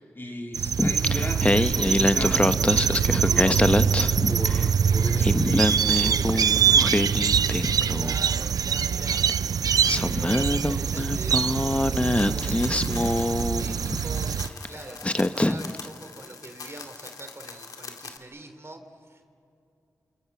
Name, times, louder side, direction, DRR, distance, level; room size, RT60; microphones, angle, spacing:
voice 1, 0.0-7.1, left 1 dB, 35° left, 1 dB, 3.7 m, -36 dB
sound 1, 0.5-14.5, right 7 dB, 90° right, 0.5 m, -24 dB
Singing, 0.8-4.7 5.0-8.3 9.3-9.4 9.8-14.0 14.6-14.8 15.0-15.8, left 1 dB, 20° left, 1.0 m, -25 dB
voice 2, 7.9-9.2 9.9-19.3, right 2 dB, 45° right, 6 dB, 3.1 m, -44 dB
sound 2, 12.0-18.2, left 4 dB, 85° left, 2.0 m, -43 dB
28.5 x 27.0 x 6.0 m, 2.7 s
cardioid pair, 45°, 6 cm